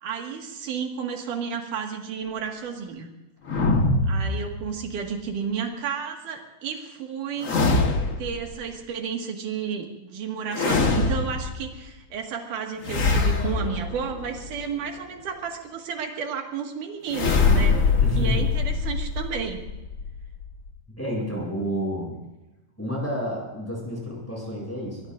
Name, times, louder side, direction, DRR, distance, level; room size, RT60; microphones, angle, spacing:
voice 1, 0.0-3.1 4.1-7.5 8.2-17.8 18.2-19.6, right 6 dB, 75° right, 2 dB, 3.4 m, -32 dB
sound 1, 3.5-5.0 7.4-8.5 10.5-11.7 12.8-14.6 17.1-20.7, left 3 dB, 70° left, 0.7 m, -23 dB
voice 2, 18.0-18.5 21.0-22.2 22.8-25.1, equal, 5° left, -3 dB, 7.7 m, -30 dB
23.5 x 21.5 x 2.6 m, 1.0 s
omnidirectional pair, 3.7 m